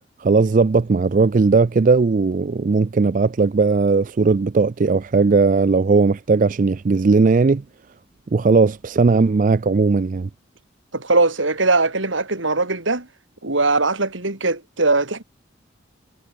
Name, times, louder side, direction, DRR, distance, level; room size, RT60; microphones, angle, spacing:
voice 1, 0.2-7.6 8.3-10.3, right 4 dB, 40° right, 0.4 m, -17 dB
voice 2, 10.9-13.1 13.4-15.2, right 3 dB, 80° right, 3.4 m, -20 dB
head